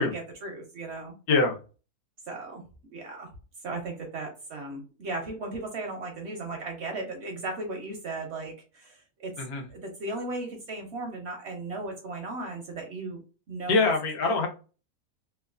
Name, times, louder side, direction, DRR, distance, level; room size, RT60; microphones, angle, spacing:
voice 1, 0.0-1.1 2.3-2.6 2.9-3.3 3.6-9.3 9.7-13.2 13.5-13.8, right 2 dB, 65° right, 2 dB, 0.7 m, -36 dB
voice 2, 13.7-14.5, left 3 dB, 90° left, 2 dB, 1.2 m, -23 dB
2.9 x 2.1 x 2.4 m, 0.34 s
omnidirectional pair, 1.6 m